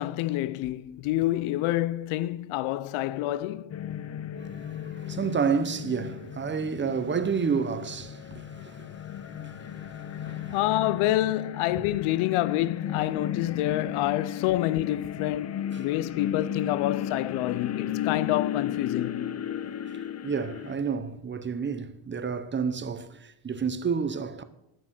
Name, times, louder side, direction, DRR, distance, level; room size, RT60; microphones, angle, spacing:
voice 1, 0.0-3.8 10.5-19.3, left 15 dB, 85° left, 0.7 m, -28 dB
sound 1, 3.7-20.7, left 10 dB, 35° left, 0.6 m, -35 dB
voice 2, 4.6-8.9 9.3-10.6 11.8-11.9 19.9-24.4, right 6 dB, 25° right, 0.7 m, -30 dB
11.0 x 7.6 x 7.4 m
cardioid pair, 125°, 48 cm